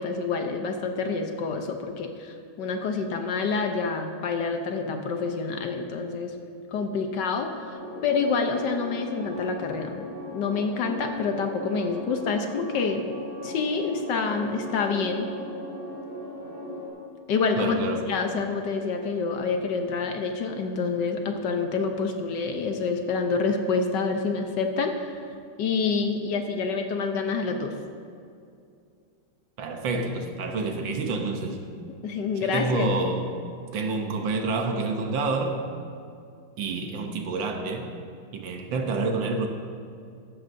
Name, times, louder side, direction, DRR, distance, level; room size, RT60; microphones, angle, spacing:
voice 1, 0.0-6.3 6.7-10.1 10.3-13.0 13.4-15.3 17.3-17.8 18.0-25.2 25.6-27.7 32.0-32.9, left 4 dB, 65° left, 4 dB, 1.3 m, -27 dB
sound 1, 7.7-16.9, left 1 dB, 50° left, 3.5 m, -38 dB
voice 2, 17.6-18.1 29.6-31.6 32.4-33.3 33.7-35.6 36.6-37.9 38.3-39.5, right 3 dB, 70° right, 5 dB, 1.6 m, -28 dB
15.0 x 13.0 x 2.6 m, 2.4 s
omnidirectional pair, 2.2 m